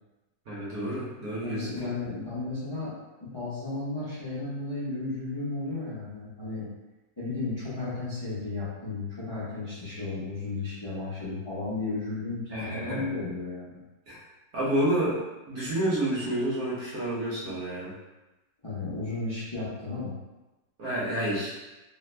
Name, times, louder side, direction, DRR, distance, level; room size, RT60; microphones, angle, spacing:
voice 1, 0.5-1.9 12.5-13.2 14.1-14.2 14.5-15.2 15.5-17.9 20.8-21.5, right 1 dB, 55° right, -7 dB, 1.2 m, -29 dB
voice 2, 1.4-2.9 3.2-6.7 7.2-13.8 18.6-20.1, left 3 dB, 30° left, -11 dB, 0.4 m, -34 dB
3.3 x 2.1 x 3.2 m, 1.1 s
omnidirectional pair, 1.9 m